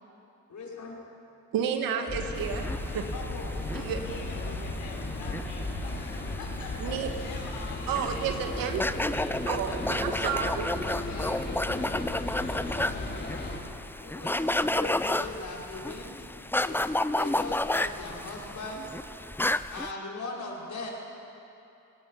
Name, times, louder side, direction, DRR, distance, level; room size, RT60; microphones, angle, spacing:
voice 1, 0.5-0.9 12.5-13.0 14.0-16.2 16.6-18.9 19.7-20.9, left 3 dB, 55° left, -3 dB, 5.7 m, -39 dB
voice 2, 1.5-3.1 3.7-4.0 6.8-7.1 7.9-8.8 9.5-10.7, right 7 dB, 80° right, 5 dB, 2.0 m, -31 dB
sound 1, 2.1-13.6, left 2 dB, 35° left, 5.0 m, -35 dB
sound 2, 2.4-19.9, left 1 dB, 5° left, 0.6 m, -32 dB
voice 3, 3.1-3.5 3.9-7.0 7.2-8.6 8.9-11.8, left 3 dB, 80° left, 0 dB, 4.5 m, -44 dB
28.5 x 18.0 x 5.8 m, 2.9 s
supercardioid pair, 55°, 34 cm